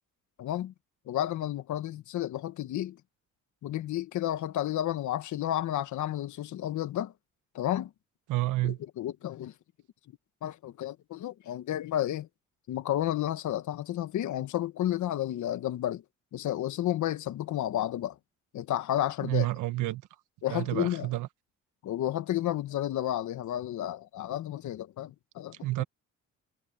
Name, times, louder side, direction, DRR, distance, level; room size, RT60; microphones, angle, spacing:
voice 1, 0.4-0.7 1.1-3.0 3.6-7.1 7.5-7.9 8.6-9.5 10.4-12.3 12.7-16.0 16.3-18.2 18.5-19.5 20.4-21.1 21.8-25.5, left 12 dB, 75° left, 1.5 m, -31 dB
voice 2, 8.3-8.8 19.2-20.0 20.5-21.3 25.6-25.8, right 18 dB, 90° right, 1.3 m, -29 dB
cardioid pair, 90°, 30 cm